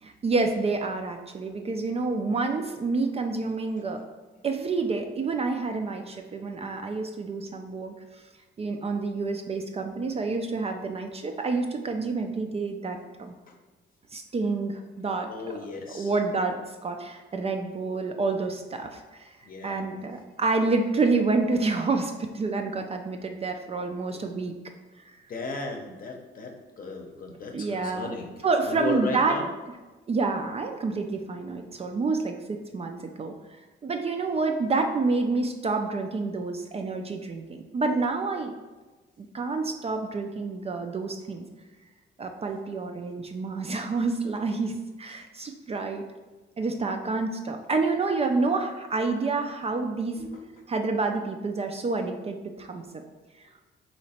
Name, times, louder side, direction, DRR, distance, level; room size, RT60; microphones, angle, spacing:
voice 1, 0.0-4.0 4.4-7.9 8.6-13.3 14.1-15.3 15.9-19.3 19.6-24.5 25.1-25.2 27.5-29.4 30.1-33.3 33.8-38.5 39.3-41.4 42.2-46.0 46.6-50.2 50.7-53.0, right 3 dB, 30° right, 4 dB, 0.4 m, -28 dB
voice 2, 15.3-16.1 19.4-20.0 24.1-24.2 25.3-28.3 28.6-29.5 50.2-50.6, left 3 dB, 45° left, 2 dB, 0.7 m, -35 dB
3.1 x 2.9 x 4.2 m, 1.2 s
cardioid pair, 90°, 20 cm